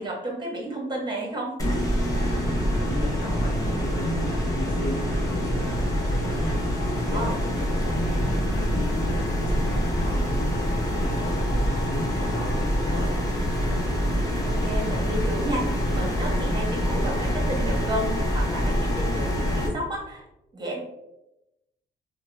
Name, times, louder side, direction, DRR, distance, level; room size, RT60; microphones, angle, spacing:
voice 1, 0.0-1.5 7.1-7.4 14.5-20.2 20.5-20.8, right 1 dB, 20° right, -1 dB, 1.1 m, -32 dB
sound 1, 1.6-19.7, equal, 15° left, 0.8 m, -25 dB
voice 2, 2.4-13.2, equal, 80° left, -5 dB, 0.7 m, -35 dB
2.8 x 2.1 x 3.2 m, 0.90 s
cardioid pair, 90°, 20 cm